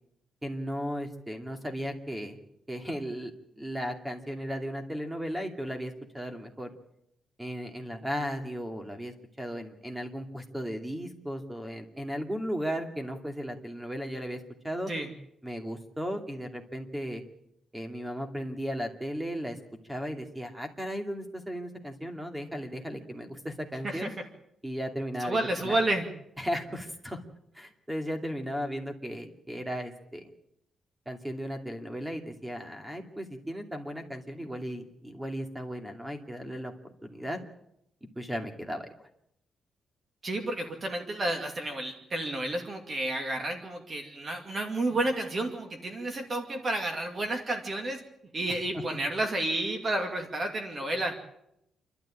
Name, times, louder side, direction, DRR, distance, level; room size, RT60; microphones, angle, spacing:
voice 1, 0.4-2.4 2.7-6.7 7.4-14.9 15.4-17.2 17.7-19.6 19.9-24.1 24.6-25.8 26.4-27.2 27.5-30.3 31.1-37.4 38.2-38.9 48.5-48.6, equal, 10° right, 5 dB, 2.6 m, -36 dB
voice 2, 25.2-26.1 40.2-48.0 48.3-51.2, right 1 dB, 35° right, 4 dB, 2.5 m, -31 dB
28.0 x 12.5 x 8.9 m, 0.79 s
cardioid pair, 135°, 0 cm